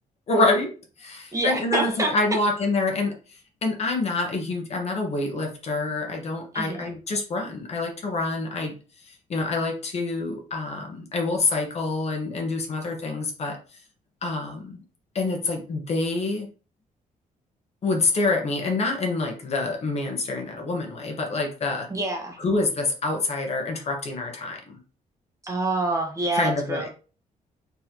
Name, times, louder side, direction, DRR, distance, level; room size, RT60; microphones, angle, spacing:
voice 1, 0.3-0.7 1.0-3.1 3.6-8.7 9.0-13.6 14.2-14.8 15.1-16.5 17.8-21.9 22.4-24.8 26.3-26.9, left 3 dB, 50° left, 2 dB, 1.3 m, -26 dB
voice 2, 1.3-2.1 6.5-6.9 21.9-22.4 25.4-26.9, right 2 dB, 20° right, 2 dB, 1.2 m, -26 dB
4.2 x 4.1 x 2.9 m, 0.36 s
cardioid pair, 130°, 14 cm